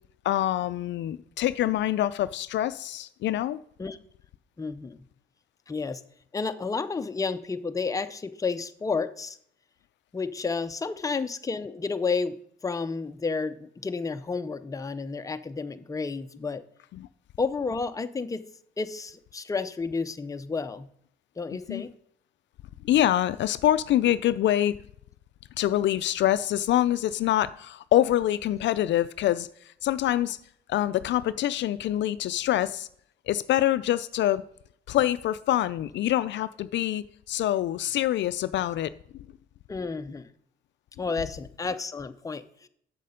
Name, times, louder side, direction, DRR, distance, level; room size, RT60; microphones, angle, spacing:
voice 1, 0.2-3.6 16.9-17.1 21.7-21.8 22.8-24.7 25.6-29.5 29.8-30.4 30.7-32.9 33.3-34.4 34.9-38.9, left 12 dB, 65° left, 0.4 m, -25 dB
voice 2, 4.6-5.0 5.7-6.0 6.3-9.4 10.1-12.4 12.6-16.6 17.4-18.4 18.8-20.9 21.4-21.9 39.7-40.3 41.0-42.7, left 4 dB, 15° left, 0.5 m, -31 dB
7.6 x 6.7 x 5.0 m
cardioid pair, 90°, 20 cm